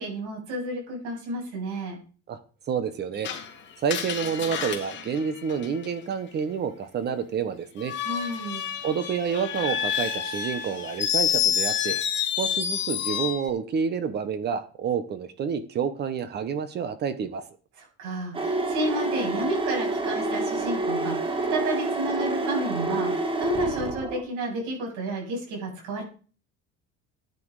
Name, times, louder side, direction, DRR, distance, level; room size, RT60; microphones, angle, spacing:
voice 1, 0.0-2.0 8.0-8.6 17.8-26.0, right 1 dB, 75° right, -1 dB, 8.0 m, -31 dB
voice 2, 2.7-3.3 3.8-7.9 8.8-12.0 12.4-17.4, right 7 dB, 35° right, 12 dB, 1.1 m, -29 dB
Screech, 3.2-6.1 7.8-13.5, left 9 dB, 40° left, 2.5 m, -29 dB
sound 1, 18.3-24.2, right 2 dB, 15° right, 1.5 m, -28 dB
14.0 x 9.6 x 4.9 m, 0.39 s
cardioid pair, 180°, 30 cm